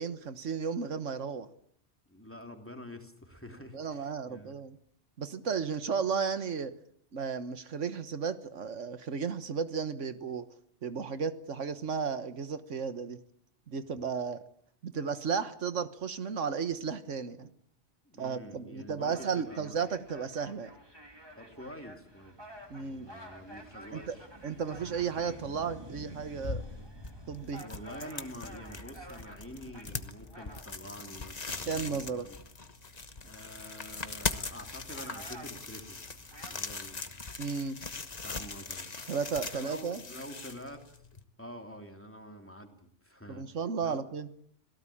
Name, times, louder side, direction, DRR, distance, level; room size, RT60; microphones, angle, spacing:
voice 1, 0.0-1.5 3.7-4.8 5.2-6.7 7.1-10.5 10.8-13.2 13.7-14.4 14.8-17.5 18.2-20.7 22.7-23.1 23.9-24.1 24.4-26.6 27.3-27.6 31.7-32.3 37.4-37.8 39.1-40.0 43.3-44.3, right 6 dB, 90° right, 11 dB, 1.7 m, -34 dB
voice 2, 2.1-4.5 18.0-19.8 21.4-22.3 22.8-24.3 27.6-32.4 33.2-36.0 36.4-37.3 38.2-38.9 39.5-41.1 41.4-44.0, equal, 10° left, 4 dB, 3.2 m, -47 dB
sound 1, 19.0-36.5, right 1 dB, 20° right, 3.2 m, -51 dB
sound 2, 26.1-41.2, left 4 dB, 35° left, 1.3 m, -41 dB
26.0 x 17.5 x 8.7 m, 0.67 s
omnidirectional pair, 1.2 m